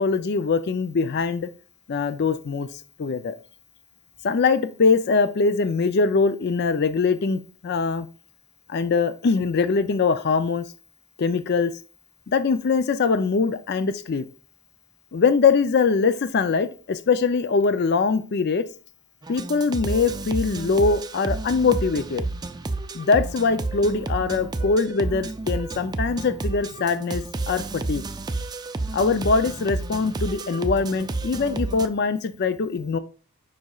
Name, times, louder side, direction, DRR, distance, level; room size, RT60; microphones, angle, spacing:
voice 1, 0.0-1.5 1.9-3.3 4.2-8.1 8.7-10.6 11.2-11.7 12.3-14.2 15.1-18.6 19.3-22.2 22.9-28.0 28.9-33.0, left 4 dB, 50° left, 11 dB, 0.4 m, -22 dB
sound 1, 19.2-31.9, right 2 dB, 20° right, 0.4 m, -31 dB
7.6 x 5.4 x 2.3 m, 0.38 s
head